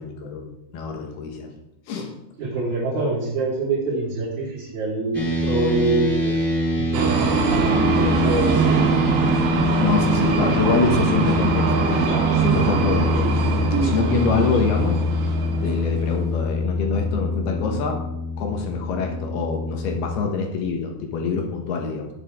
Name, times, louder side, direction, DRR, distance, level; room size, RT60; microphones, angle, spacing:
voice 1, 0.0-1.5 1.9-2.1 9.8-13.4 13.8-15.0 15.6-18.0 18.4-22.1, left 4 dB, 70° left, 2 dB, 3.0 m, -25 dB
voice 2, 2.4-6.4 6.7-9.4, right 2 dB, 45° right, -9 dB, 3.4 m, -26 dB
sound 1, 5.1-20.2, left 2 dB, 5° right, 2.5 m, -25 dB
sound 2, 6.9-16.3, right 5 dB, 70° right, 3.3 m, -22 dB
17.5 x 6.6 x 3.7 m, 0.82 s
omnidirectional pair, 5.4 m